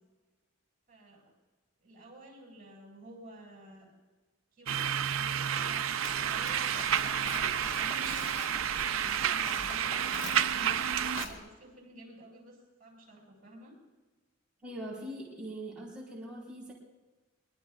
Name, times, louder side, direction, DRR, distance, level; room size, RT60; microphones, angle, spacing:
voice 1, 0.9-1.3 1.8-3.9 4.5-8.1 8.7-13.8, right 1 dB, 40° right, -1 dB, 6.1 m, -51 dB
sound 1, 4.7-11.2, right 9 dB, 80° right, 0.5 m, -30 dB
Livestock farm animals working animals, 6.0-11.3, left 2 dB, 60° left, 3.2 m, -44 dB
voice 2, 14.6-16.7, right 1 dB, 5° right, -6 dB, 4.3 m, -42 dB
23.5 x 23.0 x 2.4 m, 1.2 s
head